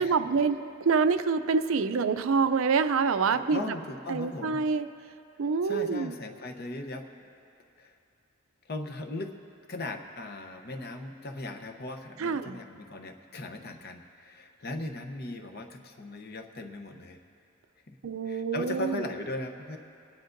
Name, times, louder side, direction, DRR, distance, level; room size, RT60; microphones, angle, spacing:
voice 1, 0.0-3.6 4.1-4.9 5.4-6.1 12.2-12.6 18.0-19.1, right 5 dB, 70° right, 11 dB, 0.4 m, -26 dB
voice 2, 3.3-4.6 5.6-7.1 7.8-7.9 8.7-9.4 9.7-17.2 17.9-18.0 18.3-19.8, left 2 dB, 50° left, 5 dB, 0.8 m, -38 dB
28.5 x 10.0 x 2.6 m, 2.6 s
head